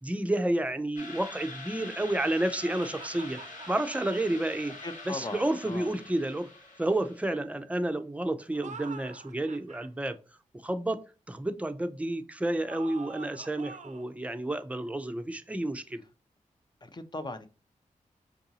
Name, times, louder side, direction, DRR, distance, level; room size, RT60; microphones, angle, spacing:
voice 1, 0.0-4.7 5.1-6.5 6.8-10.2 10.6-16.0, right 1 dB, 10° right, 0.5 m, -30 dB
sound 1, 1.0-7.3, left 3 dB, 70° left, 1.2 m, -45 dB
sound 2, 2.6-4.3 8.4-9.9 12.7-14.1, right 5 dB, 60° right, 0.5 m, -46 dB
voice 2, 4.8-5.9 16.8-17.5, left 2 dB, 30° left, 0.6 m, -38 dB
4.6 x 2.6 x 2.8 m
cardioid pair, 55°, 14 cm